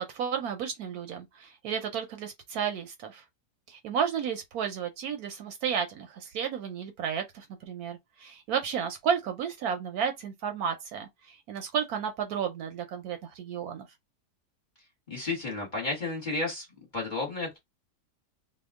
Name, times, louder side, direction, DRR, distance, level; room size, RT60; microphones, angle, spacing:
voice 1, 0.0-3.2 3.7-13.9, right 7 dB, 70° right, 1.0 m, -32 dB
voice 2, 15.1-16.7 16.9-17.6, left 3 dB, 30° left, 1.3 m, -32 dB
2.8 x 2.3 x 3.5 m
omnidirectional pair, 1.8 m